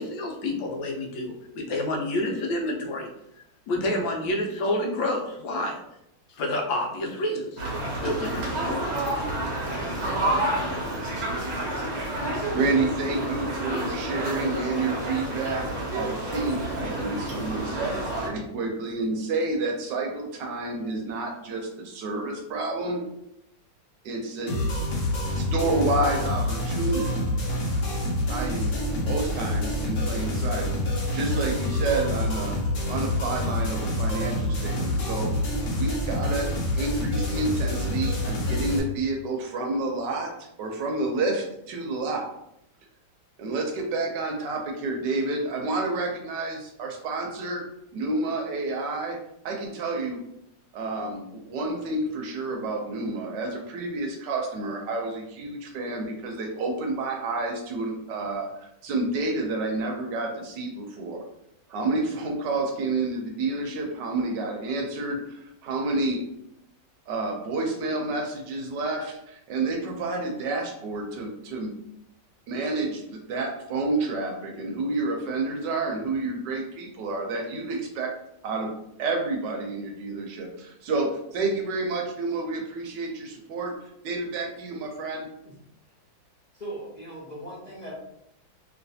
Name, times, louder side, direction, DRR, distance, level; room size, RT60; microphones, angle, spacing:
voice 1, 0.0-3.1 3.7-5.8 6.3-7.6 7.9-9.2, left 1 dB, 80° left, 1 dB, 1.4 m, -29 dB
sound 1, 7.6-18.3, right 1 dB, 50° right, 0.9 m, -29 dB
voice 2, 12.5-15.7 15.9-23.0 24.0-24.6 25.3-27.3 28.3-30.7 31.1-32.6 32.9-35.3 35.8-36.5 36.7-40.3 40.6-42.3 43.4-47.6 47.9-49.2 49.4-50.2 50.7-58.5 58.8-61.2 61.7-66.2 67.1-71.7 72.5-78.2 78.4-78.7 79.0-83.8 84.0-85.3, right 2 dB, 75° right, 2 dB, 1.2 m, -29 dB
sound 2, 24.5-38.8, left 1 dB, 60° left, 1.3 m, -27 dB
voice 3, 86.5-87.9, right 1 dB, 45° left, -8 dB, 0.6 m, -38 dB
3.1 x 2.9 x 2.7 m, 0.78 s
omnidirectional pair, 2.0 m